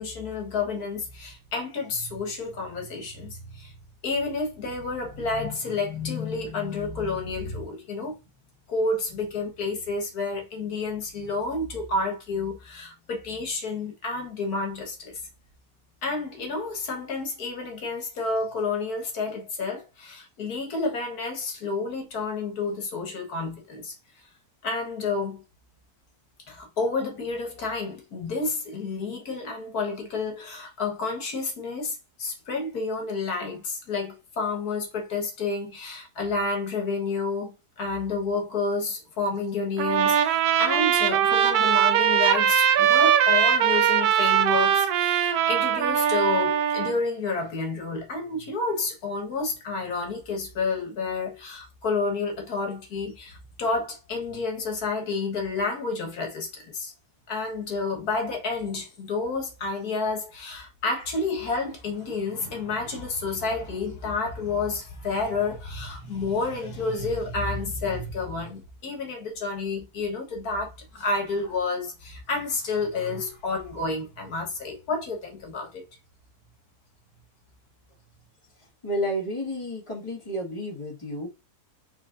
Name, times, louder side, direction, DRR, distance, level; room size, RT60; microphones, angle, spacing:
voice 1, 0.0-3.7 4.0-8.2 8.7-15.2 16.0-23.9 24.6-25.4 26.5-56.9 57.3-75.8, left 3 dB, 70° left, 2.0 m, -30 dB
Trumpet, 39.8-46.9, right 9 dB, 75° right, 1.1 m, -21 dB
voice 2, 78.8-81.3, equal, 20° left, 1.8 m, -31 dB
4.4 x 4.1 x 2.6 m
omnidirectional pair, 1.7 m